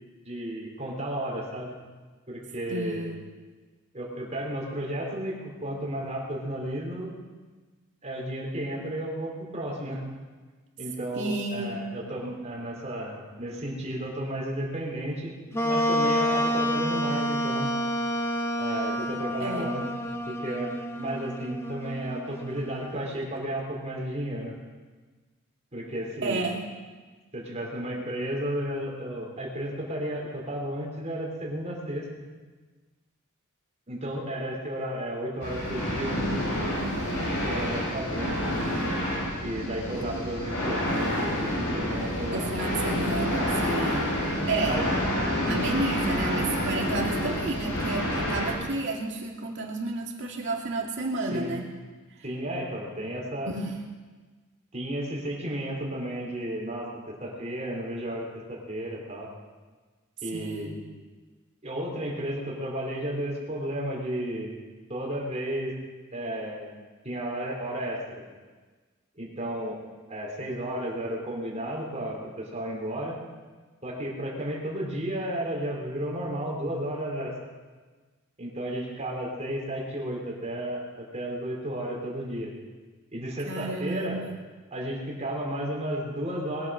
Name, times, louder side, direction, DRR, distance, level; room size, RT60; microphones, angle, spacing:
voice 1, 0.2-1.7 2.3-3.1 3.9-7.1 8.0-10.0 10.8-15.4 15.6-17.7 18.6-19.8 20.3-24.6 25.7-26.4 27.3-32.1 33.9-36.2 37.3-38.6 39.4-42.5 43.3-43.5 44.6-44.9 51.3-51.5 52.2-53.5 54.7-59.3 60.2-60.8 61.6-64.5 64.9-65.7 66.1-66.7 67.0-68.0 69.2-69.8 70.1-73.2 73.8-77.3 78.4-82.5 83.1-84.2 84.7-86.7, right 1 dB, 30° right, -2 dB, 3.8 m, -33 dB
voice 2, 2.7-3.2 11.2-11.8 19.4-19.7 26.2-26.7 42.3-44.1 44.5-44.8 45.5-51.7 53.5-53.7 60.3-60.8 83.5-84.4, right 2 dB, 60° right, -1 dB, 2.4 m, -31 dB
Wind instrument woodwind instrument, 15.5-23.0, equal, 10° left, 1.0 m, -29 dB
sound 1, 35.4-48.5, equal, 60° left, 4.9 m, -28 dB
21.0 x 8.9 x 6.5 m, 1.4 s
head